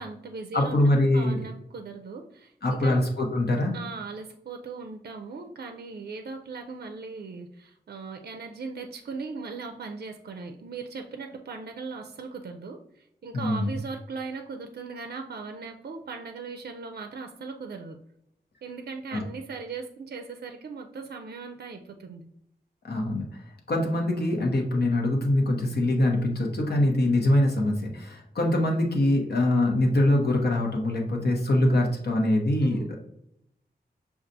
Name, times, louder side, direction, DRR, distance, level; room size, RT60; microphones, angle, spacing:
voice 1, 0.0-3.0 3.7-18.0 18.6-22.3 26.8-27.0 32.7-32.9, right 4 dB, 65° right, 5 dB, 0.4 m, -39 dB
voice 2, 0.5-1.4 2.6-3.7 13.3-13.7 19.1-19.2 22.8-23.4 23.7-33.0, left 1 dB, 70° left, 1 dB, 0.9 m, -23 dB
6.5 x 2.4 x 2.6 m, 0.78 s
wide cardioid pair, 105°, 17 cm